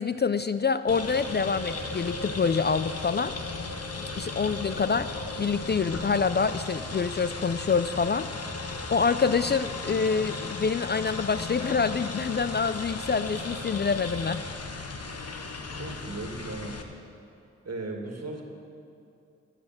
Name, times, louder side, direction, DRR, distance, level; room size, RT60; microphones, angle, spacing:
voice 1, 0.0-3.3 4.1-5.1 5.4-8.3 8.9-14.4, left 5 dB, 35° left, 12 dB, 0.4 m, -26 dB
sound 1, 0.9-16.8, left 3 dB, 50° left, 1.1 m, -36 dB
voice 2, 15.8-16.8 17.6-18.4, right 2 dB, 50° right, 2 dB, 1.9 m, -36 dB
14.0 x 6.5 x 7.2 m, 2.5 s
cardioid pair, 40°, 32 cm